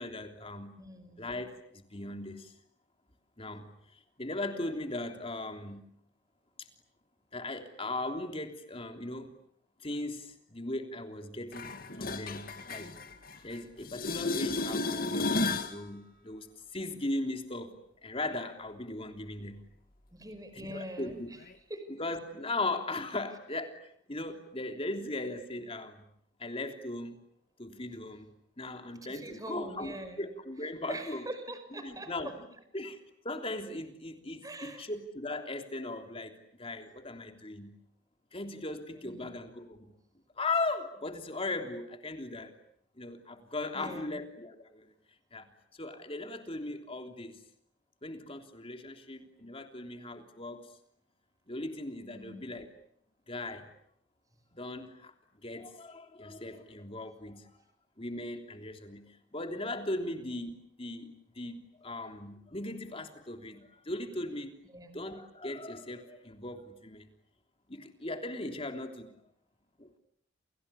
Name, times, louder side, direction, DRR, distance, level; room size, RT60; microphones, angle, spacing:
voice 1, 0.0-0.7 1.2-2.5 3.4-5.8 6.6-6.7 7.3-9.3 9.8-12.9 13.3-16.5 16.7-17.8 18.0-19.6 20.6-21.3 22.0-26.0 26.4-27.2 27.6-31.2 31.8-32.3 32.7-33.0 33.2-37.7 38.3-39.9 40.4-42.5 43.0-44.9 45.3-47.4 48.0-50.7 51.5-52.7 53.3-53.7 54.5-57.5 58.0-59.1 59.3-64.6 64.9-67.1 67.7-69.1 69.8-70.0, left 2 dB, 30° left, 5 dB, 3.3 m, -38 dB
voice 2, 0.8-1.3 20.1-21.4 21.7-21.9 29.0-30.3 30.9-32.3 34.4-34.9 39.0-39.3 43.7-44.2 52.1-52.5 64.7-64.9, right 1 dB, 20° right, 9 dB, 5.3 m, -43 dB
sound 1, 11.5-13.6 13.8-15.8 21.5-21.6, left 3 dB, 50° left, 2.2 m, -33 dB
29.5 x 28.5 x 7.1 m, 0.69 s
head